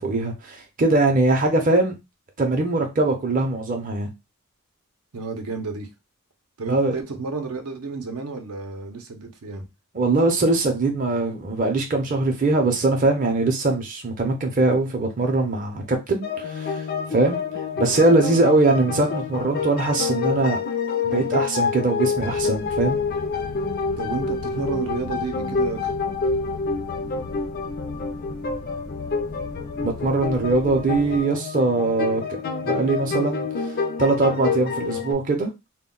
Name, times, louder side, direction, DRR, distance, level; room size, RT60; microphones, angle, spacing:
voice 1, 0.0-2.0 2.4-4.1 6.7-7.0 9.9-16.8 17.1-17.4 17.8-20.6 21.0-23.0 29.8-32.2 32.6-33.7 34.0-35.5, right 2 dB, 40° right, 0.5 m, -21 dB
voice 2, 5.1-5.9 6.6-9.6 24.0-25.9, right 4 dB, 80° right, 0.6 m, -31 dB
sound 1, 16.2-35.1, left 5 dB, 45° left, 0.3 m, -27 dB
sound 2, 22.1-31.2, left 3 dB, 80° left, 0.8 m, -38 dB
2.2 x 2.1 x 3.7 m
head